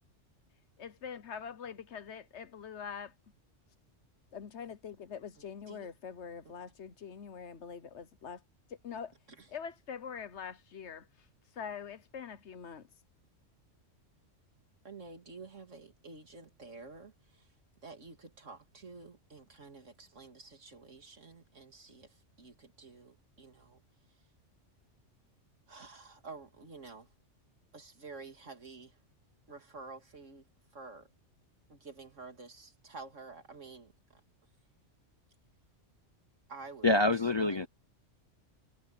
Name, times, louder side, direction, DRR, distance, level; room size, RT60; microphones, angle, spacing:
voice 1, 0.8-3.1 4.3-8.4 8.7-9.1 9.5-11.3 11.5-12.9, left 7 dB, 65° left, 1.3 m, -44 dB
voice 2, 14.8-17.5 17.8-23.8 24.1-24.2 25.7-27.1 27.7-29.0 29.5-31.1 31.7-34.2 36.5-37.7, right 4 dB, 85° right, 2.9 m, -50 dB
voice 3, 36.8-37.7, left 2 dB, 30° left, 0.5 m, -26 dB
omnidirectional pair, 1.2 m